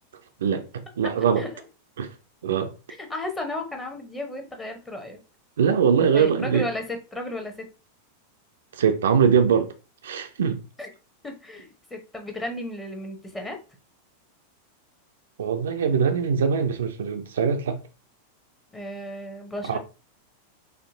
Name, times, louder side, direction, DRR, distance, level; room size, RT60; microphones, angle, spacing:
voice 1, 0.4-1.5 2.0-2.1 2.4-2.7 5.6-6.7 8.7-9.7 10.0-10.6 15.4-17.8 19.6-19.8, right 7 dB, 65° right, 0.4 m, -22 dB
voice 2, 3.0-5.2 6.1-7.7 10.8-10.9 11.2-13.6 18.7-19.8, left 1 dB, 10° left, 0.9 m, -34 dB
4.2 x 2.5 x 2.7 m
figure-of-eight pair, 90°, 0 cm